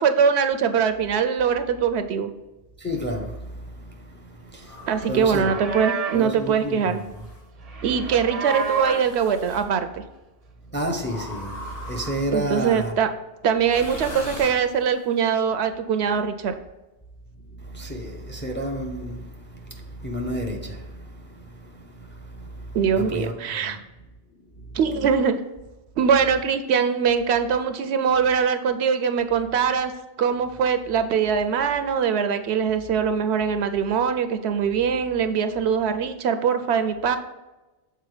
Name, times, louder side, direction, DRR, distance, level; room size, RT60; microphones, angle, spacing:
voice 1, 0.0-2.3 4.9-7.0 7.8-9.9 12.3-13.1 13.4-16.5 22.7-23.8 24.7-25.4 26.0-29.9 30.2-37.2, right 6 dB, 75° right, 0.8 m, -22 dB
voice 2, 2.8-5.5 6.1-7.2 8.0-8.1 10.7-13.0 17.4-23.8 24.4-24.8, equal, 10° left, 0.6 m, -32 dB
sound 1, 4.6-5.3 6.2-7.4 8.4-9.7 11.0-12.5 13.6-15.1, left 1 dB, 60° left, 1.3 m, -40 dB
Livestock farm animals working animals, 5.2-6.3 7.6-9.1, right 4 dB, 40° right, 0.6 m, -30 dB
6.8 x 4.1 x 4.9 m
omnidirectional pair, 1.1 m